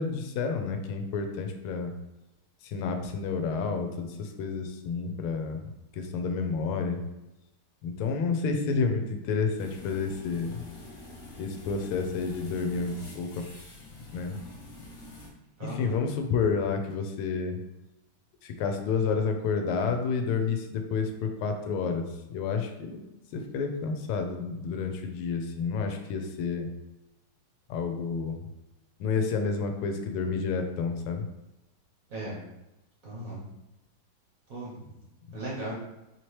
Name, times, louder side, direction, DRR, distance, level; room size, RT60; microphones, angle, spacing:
voice 1, 0.0-1.9 2.6-5.7 5.9-7.0 7.8-10.6 11.4-13.3 14.1-14.4 15.6-17.6 18.4-23.0 23.3-26.7 27.7-28.4 29.0-31.3, left 5 dB, 85° left, 5 dB, 1.5 m, -30 dB
sound 1, 9.6-15.3, left 2 dB, 55° left, 0.8 m, -46 dB
voice 2, 15.6-15.9 32.1-32.4 33.0-33.4 34.5-34.9 35.3-35.7, right 2 dB, 50° right, -6 dB, 1.1 m, -37 dB
4.6 x 2.9 x 3.1 m, 0.97 s
omnidirectional pair, 2.3 m